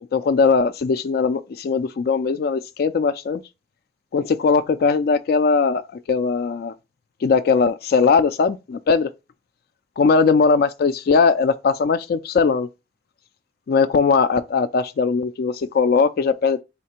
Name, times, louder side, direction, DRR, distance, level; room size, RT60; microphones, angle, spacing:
voice 1, 0.1-3.4 4.1-5.8 6.1-6.7 7.2-9.1 10.0-12.7 13.7-16.6, left 5 dB, 60° left, 0.3 m, -19 dB
4.3 x 3.2 x 2.8 m
head